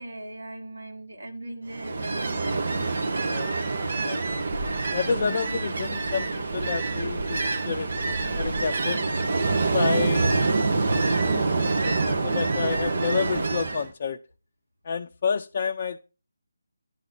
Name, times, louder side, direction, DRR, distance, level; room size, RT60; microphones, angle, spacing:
voice 1, 0.0-2.8, right 1 dB, 75° right, 3.1 m, -39 dB
Ocean, 1.7-13.9, right 3 dB, 55° right, 1.4 m, -26 dB
voice 2, 4.0-4.4 4.9-9.0 9.7-10.3 11.1-14.2 14.8-16.0, left 6 dB, 40° left, 0.6 m, -30 dB
11.0 x 4.0 x 6.7 m
figure-of-eight pair, 155°, 0 cm